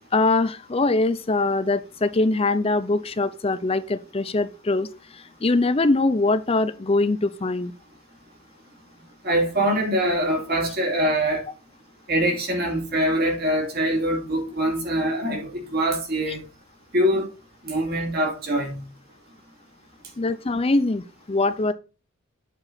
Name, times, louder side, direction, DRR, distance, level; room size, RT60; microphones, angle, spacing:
voice 1, 0.1-4.9 5.1-7.7 20.2-21.7, left 2 dB, 25° left, 0.5 m, -22 dB
voice 2, 9.2-11.4 12.1-16.4 16.9-17.2 17.6-18.8, right 1 dB, 45° right, 2.8 m, -23 dB
7.7 x 4.7 x 5.7 m
head